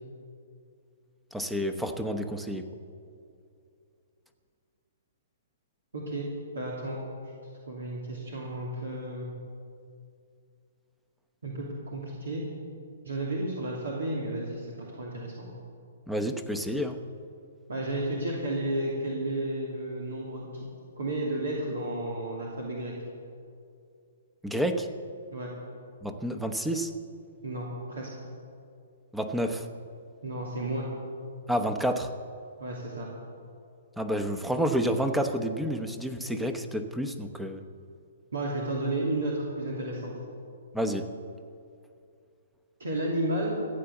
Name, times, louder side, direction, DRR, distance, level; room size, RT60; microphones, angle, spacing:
voice 1, 1.3-2.7 16.1-17.0 24.4-24.9 26.0-26.9 29.1-29.7 31.5-32.1 34.0-37.6 40.7-41.1, equal, 5° right, 6 dB, 1.0 m, -29 dB
voice 2, 5.9-6.3 6.5-7.0 7.7-9.3 11.4-12.4 13.0-15.5 17.7-20.7 21.0-22.9 25.3-25.5 27.4-28.1 30.2-30.9 32.6-33.1 38.3-40.1 42.8-43.6, right 1 dB, 80° right, -3 dB, 2.7 m, -32 dB
15.0 x 8.7 x 8.3 m, 2.4 s
hypercardioid pair, 125°, 0 cm